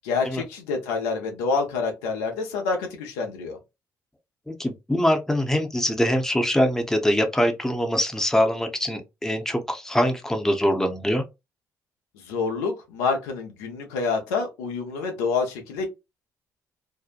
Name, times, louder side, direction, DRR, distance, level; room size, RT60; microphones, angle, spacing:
voice 1, 0.0-3.6 12.3-15.9, left 4 dB, 90° left, 0.6 m, -27 dB
voice 2, 4.5-11.2, equal, 5° left, 0.7 m, -23 dB
2.7 x 2.1 x 2.4 m
hypercardioid pair, 55°, 8 cm